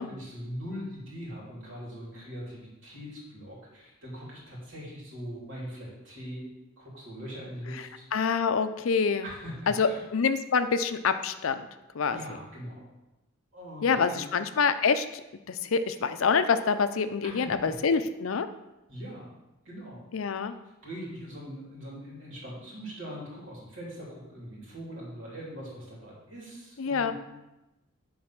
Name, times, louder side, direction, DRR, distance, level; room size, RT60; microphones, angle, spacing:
voice 1, 0.0-6.4 6.8-8.0 9.2-10.0 12.1-12.9 13.5-14.3 17.2-17.8 18.9-19.3 19.6-20.5 20.8-27.1, equal, 60° right, -5 dB, 3.3 m, -41 dB
voice 2, 8.1-9.3 9.7-11.7 11.9-12.2 13.8-15.1 15.5-18.5 20.1-20.5 26.8-27.1, left 5 dB, 75° left, 11 dB, 0.5 m, -26 dB
9.5 x 4.0 x 5.9 m, 0.98 s
head